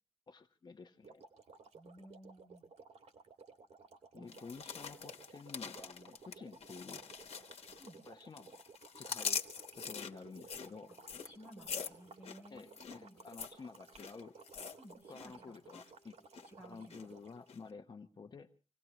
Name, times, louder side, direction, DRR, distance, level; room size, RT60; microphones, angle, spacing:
voice 1, 0.3-1.2 4.1-7.0 8.1-8.6 8.9-10.9 12.5-14.4 15.1-16.2 16.6-18.5, left 4 dB, 40° left, 6 dB, 0.9 m, -51 dB
sound 1, 1.0-17.5, right 4 dB, 85° right, 2.2 m, -57 dB
voice 2, 1.7-2.6 4.2-4.3 7.8-8.0 11.2-13.2 14.8-15.8 16.4-17.1, equal, 15° right, 0 dB, 6.0 m, -56 dB
sound 2, 4.3-8.1 8.4-15.3 15.6-15.9 16.3-17.0 17.5-17.6, left 6 dB, 65° left, 1.4 m, -44 dB
sound 3, 11.3-17.4, left 1 dB, 35° right, 7.5 m, -71 dB
26.5 x 18.0 x 3.0 m, 0.38 s
wide cardioid pair, 170°, 11 cm